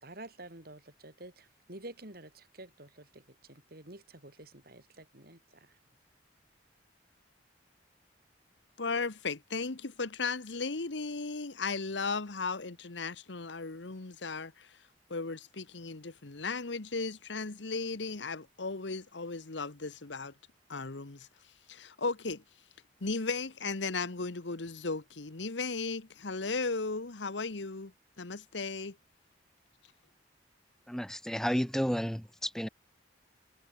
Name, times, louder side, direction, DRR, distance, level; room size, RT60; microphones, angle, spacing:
voice 1, 0.0-3.2 3.5-5.4, right 2 dB, 55° right, 4.4 m, -49 dB
voice 2, 8.8-14.7 15.1-20.3 20.7-21.3 21.7-22.4 23.0-27.9 28.2-29.0, left 4 dB, 75° left, 1.3 m, -36 dB
voice 3, 30.9-32.7, equal, 5° left, 0.9 m, -32 dB
head